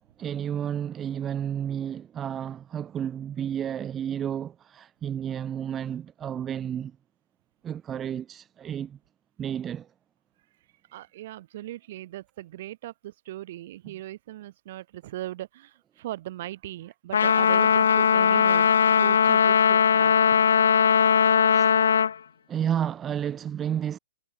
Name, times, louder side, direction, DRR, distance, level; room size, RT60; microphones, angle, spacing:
voice 1, 0.2-7.0 7.6-9.0 9.4-9.9 13.9-14.0 21.5-21.7 22.5-24.0, right 9 dB, 15° right, 0.4 m, -31 dB
voice 2, 10.9-20.5, right 14 dB, 40° right, 2.6 m, -38 dB
Trumpet, 17.1-22.1, left 7 dB, 80° left, 0.4 m, -19 dB
hypercardioid pair, 170°, 0 cm